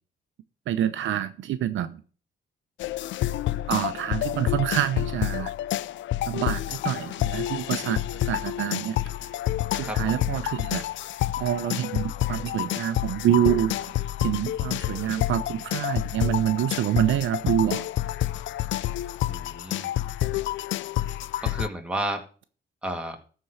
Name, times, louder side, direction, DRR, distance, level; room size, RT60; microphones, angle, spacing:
voice 1, 0.7-2.0 3.7-5.5 6.3-9.0 9.7-10.8 11.4-13.8 14.2-17.8, right 11 dB, 75° right, 0.8 m, -26 dB
sound 1, 2.8-21.7, left 14 dB, 70° left, 0.4 m, -29 dB
voice 2, 19.2-19.9 21.4-22.2 22.8-23.2, right 1 dB, 5° right, 2.1 m, -32 dB
13.0 x 4.6 x 6.5 m
cardioid pair, 90°, 20 cm